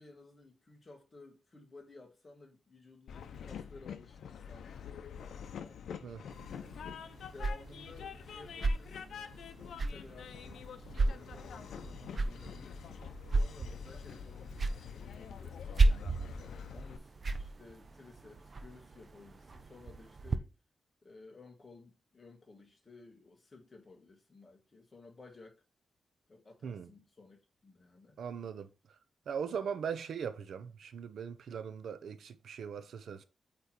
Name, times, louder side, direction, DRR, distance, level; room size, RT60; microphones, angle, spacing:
voice 1, 0.0-4.7 5.2-5.8 7.3-15.6 16.3-20.5 21.0-25.6 26.3-28.2, left 3 dB, 25° left, 1.5 m, -56 dB
Train, 3.1-17.0, left 7 dB, 90° left, 0.6 m, -46 dB
sound 1, 6.3-20.4, right 3 dB, 35° right, 0.5 m, -35 dB
voice 2, 26.6-26.9 28.2-28.7 29.3-33.2, right 7 dB, 75° right, 0.6 m, -40 dB
8.3 x 3.2 x 4.2 m
wide cardioid pair, 155°, 0 cm